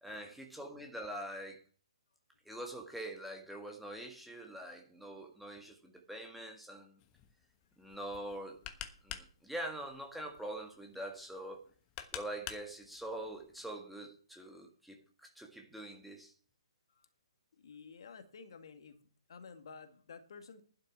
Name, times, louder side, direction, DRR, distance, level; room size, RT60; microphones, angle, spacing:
voice 1, 0.0-1.6 2.5-7.0 7.8-8.6 9.0-11.6 12.1-16.3, right 1 dB, ahead, 1.7 m, -44 dB
sound 1, 7.0-13.7, left 11 dB, 25° left, 1.2 m, -50 dB
voice 2, 17.6-19.0 19.3-20.6, left 5 dB, 55° left, 2.1 m, -52 dB
12.0 x 9.9 x 5.9 m
figure-of-eight pair, 130°, 3 cm